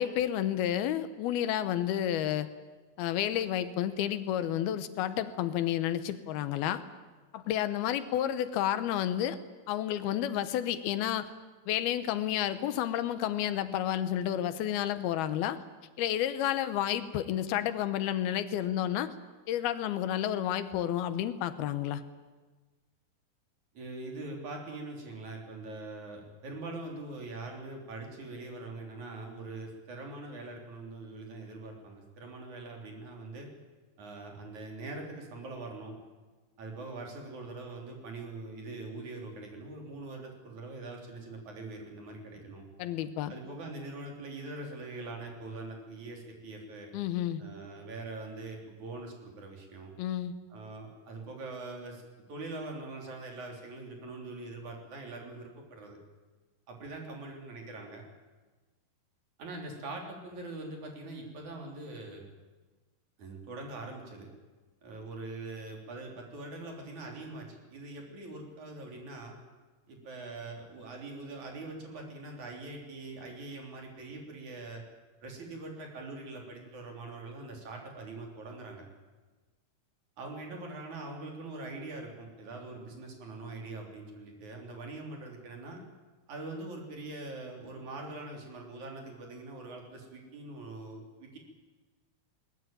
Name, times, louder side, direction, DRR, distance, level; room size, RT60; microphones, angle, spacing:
voice 1, 0.0-2.5 3.0-6.8 7.3-9.4 9.7-11.3 11.7-15.6 16.0-19.1 19.5-22.0 42.8-43.3 46.9-47.4 50.0-50.3, left 11 dB, 80° left, 12 dB, 2.8 m, -30 dB
voice 2, 23.7-33.5 34.0-36.0 36.6-42.7 43.3-46.9 47.4-49.9 50.5-52.0 52.3-56.0 56.7-58.0 59.4-62.2 63.2-64.3 64.8-69.4 69.9-74.8 75.2-78.9 80.2-85.8 86.3-91.4, right 2 dB, 50° right, 1 dB, 4.6 m, -43 dB
21.0 x 20.0 x 9.1 m, 1.3 s
omnidirectional pair, 4.5 m